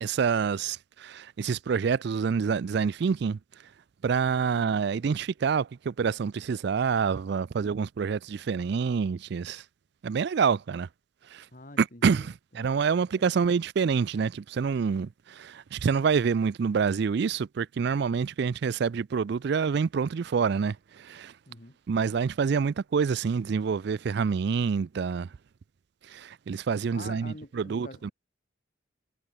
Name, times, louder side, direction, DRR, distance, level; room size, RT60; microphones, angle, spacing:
voice 1, 0.0-3.4 4.0-9.6 10.0-10.9 11.3-11.5 11.8-21.3 21.9-25.3 26.1-28.1, right 6 dB, 55° right, 0.4 m, -27 dB
voice 2, 11.5-12.3 12.6-12.8 13.1-13.2 21.5-21.8 26.9-28.1, left 2 dB, 40° left, 2.7 m, -46 dB
head